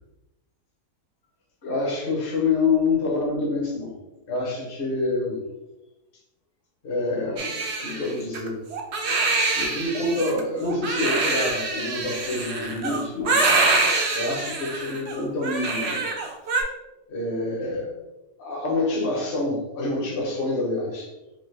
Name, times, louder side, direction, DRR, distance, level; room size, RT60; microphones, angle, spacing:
voice 1, 1.6-3.9 4.3-5.4 6.8-8.6 9.5-13.6 14.1-16.0 17.1-18.0 18.4-21.1, left 3 dB, 40° left, -1 dB, 1.0 m, -27 dB
Crying sobbing, 7.4-16.6, right 3 dB, 60° right, 0.8 m, -25 dB
4.1 x 2.8 x 3.2 m, 1.0 s
omnidirectional pair, 1.6 m